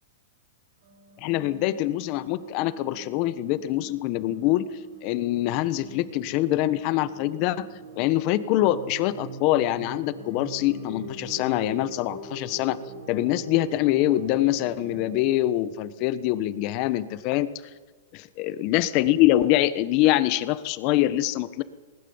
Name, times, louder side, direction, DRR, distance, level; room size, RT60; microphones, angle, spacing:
sound 1, 0.8-15.1, right 1 dB, 70° right, 5.6 m, -43 dB
voice 1, 1.2-4.7 5.0-7.7 8.0-12.8 13.1-17.5 18.1-21.6, left 14 dB, 45° left, 14 dB, 1.2 m, -24 dB
20.0 x 19.5 x 7.3 m, 1.3 s
hypercardioid pair, 140°, 0 cm